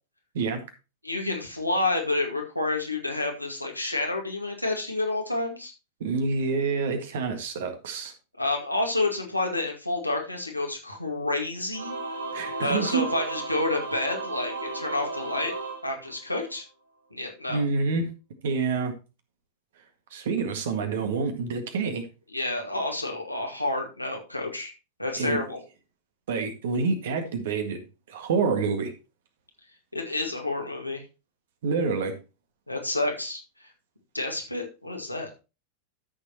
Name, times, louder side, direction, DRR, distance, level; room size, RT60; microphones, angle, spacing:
voice 1, 1.0-5.7 8.4-11.9 12.6-15.5 15.8-16.7 17.1-17.6 22.3-24.7 25.0-25.6 29.9-31.0 32.7-33.7 34.1-35.3, left 2 dB, 85° left, 2.1 m, -29 dB
voice 2, 6.0-8.1 12.3-13.1 17.5-18.1 18.4-18.9 20.1-22.1 25.2-25.4 26.3-27.8 28.1-28.9 31.6-32.1, right 4 dB, 60° right, 1.8 m, -27 dB
Singing / Musical instrument, 11.7-16.6, right 3 dB, 75° right, 1.7 m, -34 dB
13.0 x 6.6 x 2.9 m
figure-of-eight pair, 90°, 0 cm